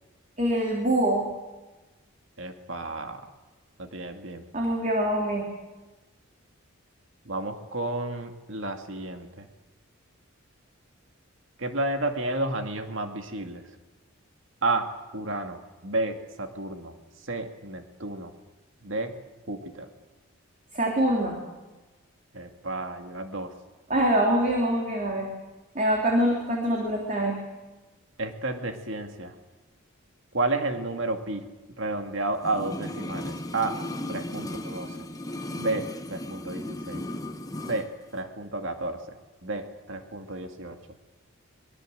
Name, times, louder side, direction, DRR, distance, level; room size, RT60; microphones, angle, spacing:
voice 1, 0.4-1.3 4.5-5.5 20.7-21.4 23.9-25.3 25.7-27.4, right 1 dB, 35° right, 0 dB, 3.3 m, -24 dB
voice 2, 2.4-3.2 3.8-4.4 7.3-9.5 11.6-13.6 14.6-14.9 15.1-16.9 17.3-18.3 18.8-19.1 19.5-19.9 22.3-23.5 28.2-29.3 30.3-31.4 31.8-33.7 34.1-35.0 35.6-35.9 36.1-37.0 37.7-37.9 38.1-39.0 39.4-40.8, right 2 dB, 60° right, 5 dB, 2.3 m, -31 dB
sound 1, 32.4-37.9 38.1-38.2, left 1 dB, 15° left, 1.2 m, -36 dB
25.0 x 21.5 x 8.0 m, 1.2 s
head